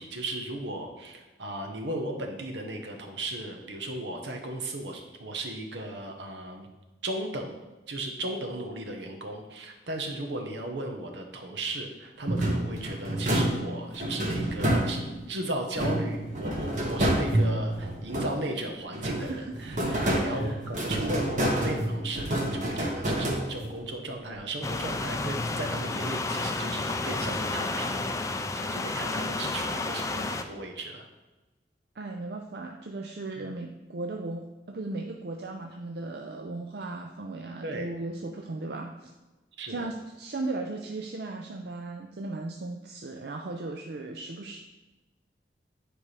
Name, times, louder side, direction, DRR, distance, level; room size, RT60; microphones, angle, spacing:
voice 1, 0.0-6.7 7.0-7.6 7.9-19.8 20.1-28.1 28.5-31.1 33.4-33.5 37.6-38.0 39.6-39.9, right 1 dB, 80° right, 3 dB, 1.1 m, -36 dB
sound 1, 12.3-15.3 15.7-18.6 18.9-23.9, right 1 dB, 45° right, 1.3 m, -28 dB
voice 2, 19.2-20.5 32.0-39.1 39.7-44.6, right 2 dB, 65° right, 2 dB, 0.5 m, -37 dB
sound 2, 24.6-30.4, left 3 dB, 15° left, 0.3 m, -31 dB
9.9 x 4.8 x 3.3 m, 1.1 s
head